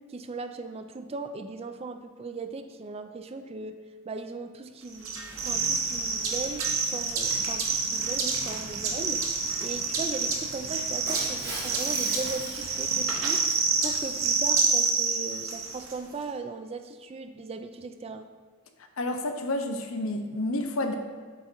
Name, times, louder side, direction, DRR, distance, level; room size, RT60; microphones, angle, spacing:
voice 1, 0.1-3.8 4.1-9.2 9.6-13.4 13.8-18.3, right 3 dB, 30° right, 8 dB, 0.3 m, -38 dB
sound 1, 5.0-15.9, right 4 dB, 85° right, 1.0 m, -28 dB
Shatter, 11.1-13.5, right 2 dB, 50° right, 2.0 m, -38 dB
voice 2, 19.0-21.0, left 1 dB, 80° left, 6 dB, 0.7 m, -30 dB
7.9 x 3.8 x 4.4 m, 1.5 s
head